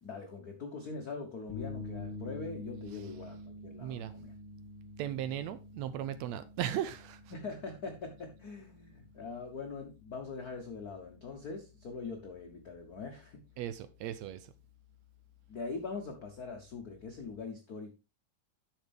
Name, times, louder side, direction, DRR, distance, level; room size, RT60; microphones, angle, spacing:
voice 1, 0.0-4.3 7.3-13.4 15.5-17.9, left 4 dB, 90° left, 0.8 m, -42 dB
sound 1, 1.5-17.4, left 2 dB, 5° left, 0.9 m, -49 dB
voice 2, 3.8-4.1 5.0-7.3 13.6-14.5, right 11 dB, 75° right, 1.8 m, -37 dB
10.5 x 6.6 x 3.5 m
omnidirectional pair, 3.5 m